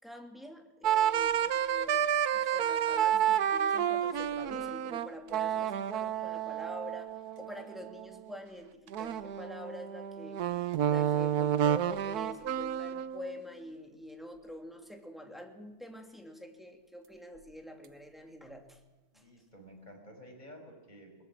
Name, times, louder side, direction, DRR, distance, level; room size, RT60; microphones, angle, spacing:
voice 1, 0.0-10.4 10.8-18.8 19.1-19.3, equal, ahead, 3 dB, 2.7 m, -46 dB
sound 1, 0.8-8.2 8.9-13.4, right 9 dB, 85° right, 1.4 m, -30 dB
voice 2, 19.1-21.2, equal, 30° left, 2 dB, 6.0 m, -52 dB
21.0 x 20.5 x 7.5 m, 1.2 s
omnidirectional pair, 1.6 m